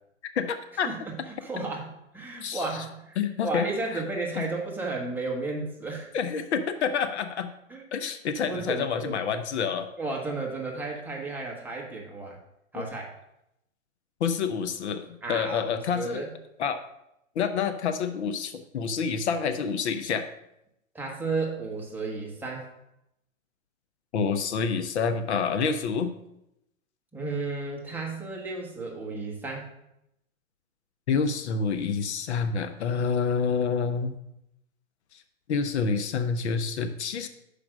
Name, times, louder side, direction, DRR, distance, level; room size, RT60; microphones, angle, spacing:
voice 1, 0.4-0.9 1.6-1.7 2.4-2.6 3.2-3.7 3.9-4.0 4.4-4.5 6.1-7.5 7.9-9.9 12.7-12.8 14.2-16.2 16.6-16.8 17.4-20.3 24.1-26.1 31.1-34.1 35.1-35.2 35.5-37.3, left 6 dB, 55° left, 9 dB, 0.7 m, -28 dB
voice 2, 1.4-6.1 7.7-7.9 8.5-9.1 10.0-12.4 12.7-13.1 15.2-16.3 20.9-22.7 27.1-29.7, right 3 dB, 5° right, -2 dB, 1.0 m, -33 dB
5.9 x 5.0 x 6.2 m, 0.83 s
hypercardioid pair, 130°, 40 cm